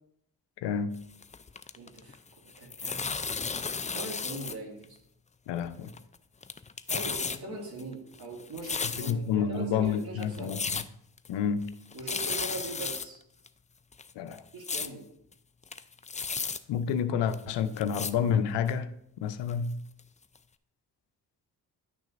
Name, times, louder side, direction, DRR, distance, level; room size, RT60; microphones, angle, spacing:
voice 1, 0.6-0.9 5.5-5.9 9.1-10.6 11.3-11.7 14.2-14.4 16.7-18.9 19.2-19.8, left 7 dB, 90° left, 11 dB, 0.6 m, -29 dB
sound 1, 1.0-2.2 2.5-4.6 4.8-4.9 5.6-6.2 6.4-7.4 7.8-9.3 9.9-10.0 10.2-10.9 11.2-11.3 11.6-11.7 11.9-13.1 13.5-13.6 13.9-14.9 15.3-15.4 15.6-16.6 17.3-17.4 17.8-18.1 18.7-18.8 19.5-19.6 20.0-20.1 20.4-20.5, left 5 dB, 20° left, 0.4 m, -34 dB
voice 2, 1.8-2.2 2.6-5.0 6.9-10.6 11.9-13.2 14.5-15.0, right 2 dB, 65° right, 0 dB, 2.1 m, -41 dB
10.5 x 6.2 x 2.5 m, 0.75 s
supercardioid pair, 50°, 41 cm